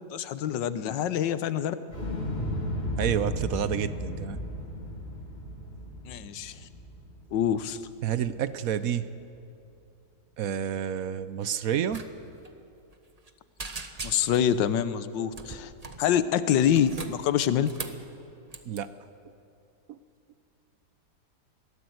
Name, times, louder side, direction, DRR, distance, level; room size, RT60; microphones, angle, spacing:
voice 1, 0.1-1.7 6.0-6.5 7.3-7.8 14.0-15.7 16.0-17.7, left 9 dB, 85° left, 13 dB, 1.5 m, -26 dB
Explosion, 1.9-7.9 8.2-8.3, equal, 35° left, 3.5 m, -34 dB
voice 2, 3.0-4.4 8.0-9.1 10.4-12.0 18.7-18.9 19.9-20.0, right 9 dB, 65° right, 13 dB, 1.0 m, -29 dB
sound 1, 11.9-12.1 12.3-12.5 12.9-13.3 13.6-14.5 15.3-16.0 16.6-18.0 18.5-18.8, right 3 dB, 25° right, 1.0 m, -39 dB
22.0 x 17.0 x 7.9 m, 2.6 s
omnidirectional pair, 1.9 m